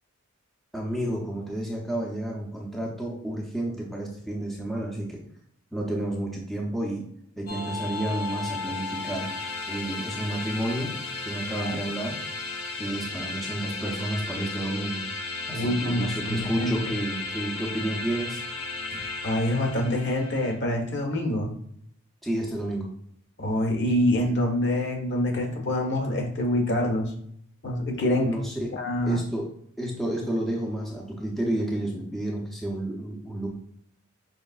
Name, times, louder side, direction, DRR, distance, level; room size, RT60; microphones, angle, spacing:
voice 1, 0.7-5.2 5.7-7.1 7.4-9.3 9.7-11.0 11.3-12.2 12.8-15.0 15.5-18.4 18.9-19.0 22.2-22.9 28.2-28.7 29.0-29.5 29.8-33.5, right 1 dB, ahead, -3 dB, 0.6 m, -31 dB
sound 1, 7.5-20.6, left 3 dB, 90° left, 0.8 m, -34 dB
voice 2, 15.5-16.7 19.0-21.5 23.4-27.1 27.6-28.3 28.7-29.2, left 1 dB, 60° left, 0 dB, 1.1 m, -26 dB
5.2 x 3.1 x 2.4 m, 0.69 s
head